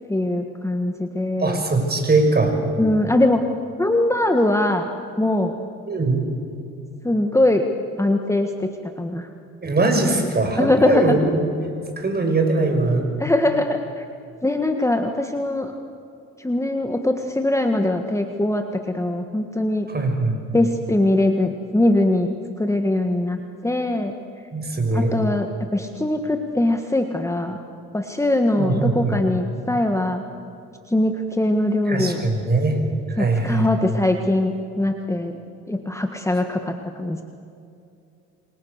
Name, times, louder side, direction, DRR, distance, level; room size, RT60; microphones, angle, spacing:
voice 1, 0.1-1.6 2.8-3.4 3.8-4.9 5.2-5.5 7.0-7.7 8.0-8.7 9.0-9.3 10.6-11.2 13.2-14.0 14.4-15.7 16.4-19.9 20.5-24.2 24.9-27.6 27.9-30.2 30.9-32.2 33.2-35.3 35.7-37.2, left 1 dB, 10° left, 5 dB, 1.7 m, -21 dB
voice 2, 1.4-2.6 5.9-6.3 9.6-11.4 12.0-13.1 19.9-20.4 24.5-25.1 28.6-29.2 31.9-32.8 33.2-33.7, right 3 dB, 30° right, 4 dB, 6.0 m, -21 dB
28.5 x 24.0 x 6.7 m, 2.6 s
cardioid pair, 90°, 30 cm